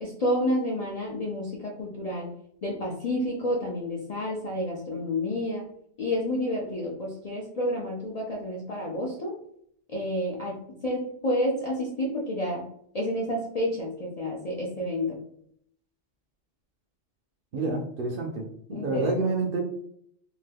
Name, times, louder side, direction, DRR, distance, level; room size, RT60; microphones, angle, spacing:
voice 1, 0.0-2.3 2.6-5.7 6.0-9.4 9.9-12.7 12.9-15.2 18.7-19.3, left 1 dB, 50° left, -3 dB, 0.4 m, -30 dB
voice 2, 17.5-19.6, right 3 dB, 60° right, 1 dB, 0.6 m, -29 dB
2.8 x 2.2 x 3.3 m, 0.68 s
omnidirectional pair, 1.3 m